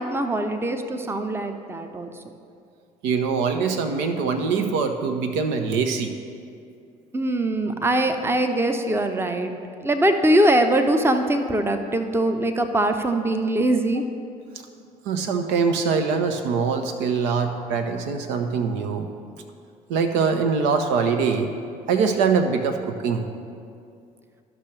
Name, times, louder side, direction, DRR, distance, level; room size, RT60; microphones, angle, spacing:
voice 1, 0.0-2.1 7.1-9.5 9.8-14.0, right 1 dB, 10° right, 6 dB, 0.7 m, -22 dB
voice 2, 3.0-6.1 15.1-19.1 19.9-21.5 21.9-23.3, right 5 dB, 65° right, 6 dB, 0.6 m, -23 dB
13.0 x 6.0 x 3.3 m, 2.4 s
figure-of-eight pair, 55°, 21 cm